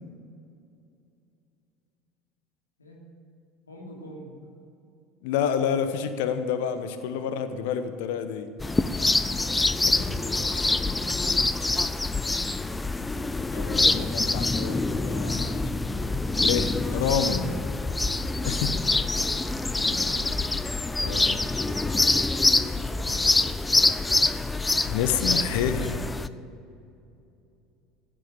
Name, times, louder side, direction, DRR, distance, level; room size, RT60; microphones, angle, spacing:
voice 1, 3.7-4.4 10.2-10.8 13.6-13.9 15.2-15.6 18.3-18.9 19.6-20.3 23.0-23.4, equal, 85° left, -2 dB, 3.0 m, -45 dB
voice 2, 5.2-8.5 9.8-10.2 10.5-10.6 13.5-15.6 16.4-17.6 18.4-18.7 21.0-21.4 24.8-26.1, left 7 dB, 60° left, 10 dB, 1.1 m, -29 dB
sound 1, 8.6-26.3, left 2 dB, 15° left, 0.5 m, -25 dB
15.5 x 7.5 x 8.9 m, 2.7 s
figure-of-eight pair, 65°, 0 cm